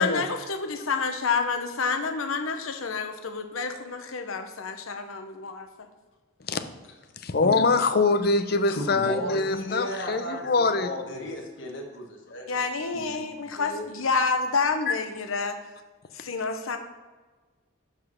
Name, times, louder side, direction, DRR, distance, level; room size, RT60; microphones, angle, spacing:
voice 1, 0.0-5.7 12.5-15.6 16.1-16.8, left 4 dB, 85° left, 6 dB, 1.0 m, -28 dB
voice 2, 7.2-11.3 14.9-15.0, left 3 dB, 50° left, 9 dB, 0.6 m, -24 dB
voice 3, 8.7-10.5 10.8-12.6 12.9-13.8, left 1 dB, 65° left, -1 dB, 1.5 m, -35 dB
6.0 x 5.4 x 6.0 m, 1.3 s
head